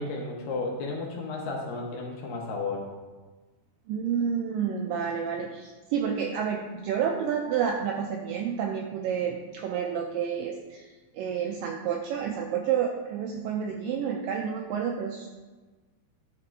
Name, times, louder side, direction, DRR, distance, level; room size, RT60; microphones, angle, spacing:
voice 1, 0.0-2.9, left 3 dB, 70° left, 0 dB, 2.5 m, -33 dB
voice 2, 3.9-15.3, right 7 dB, 90° right, 2 dB, 1.9 m, -30 dB
11.0 x 3.8 x 4.5 m, 1.3 s
omnidirectional pair, 4.5 m